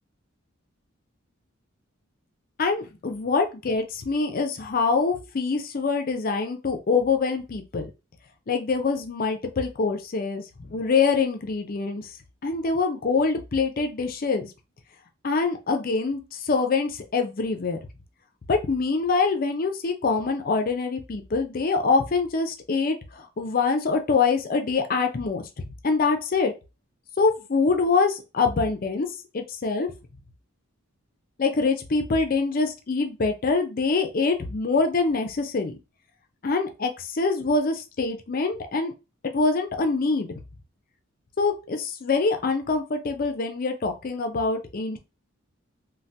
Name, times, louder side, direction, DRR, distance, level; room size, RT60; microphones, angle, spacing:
voice 1, 2.6-7.9 8.5-12.1 12.4-14.5 15.2-17.8 18.5-25.4 25.8-26.5 27.2-29.1 29.3-29.9 31.4-35.7 36.4-38.9 39.3-40.4 41.4-45.0, left 4 dB, 45° left, 6 dB, 0.5 m, -25 dB
3.2 x 2.2 x 2.7 m, 0.29 s
head